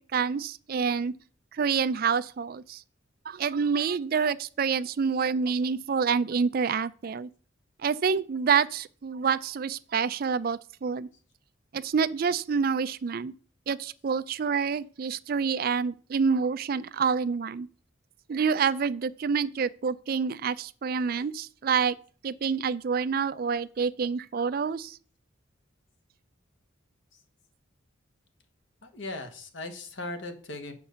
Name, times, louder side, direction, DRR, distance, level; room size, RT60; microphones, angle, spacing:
voice 1, 0.1-1.2 1.5-2.8 3.3-7.3 7.8-11.1 11.7-13.3 13.7-17.7 18.3-22.0 22.2-25.0, right 6 dB, 45° right, 0.4 m, -27 dB
voice 2, 28.8-30.7, left 2 dB, 70° left, 1.4 m, -38 dB
7.3 x 5.3 x 6.7 m
head